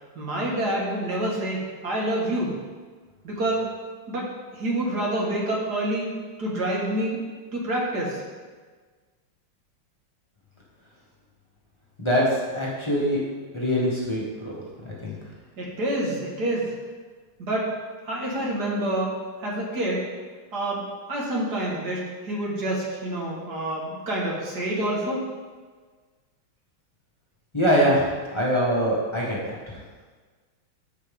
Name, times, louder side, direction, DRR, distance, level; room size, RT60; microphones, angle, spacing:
voice 1, 0.2-2.6 3.2-3.7 4.1-4.3 4.5-6.1 6.4-7.2 7.5-8.2 15.6-16.7 17.4-17.7 18.0-19.1 19.4-20.0 20.5-25.2, right 1 dB, 50° right, -3 dB, 2.1 m, -27 dB
voice 2, 12.0-13.2 13.5-14.6 14.8-15.1 27.5-28.0 28.3-29.8, equal, 15° left, -6 dB, 1.4 m, -23 dB
14.0 x 4.9 x 3.6 m, 1.5 s
omnidirectional pair, 2.3 m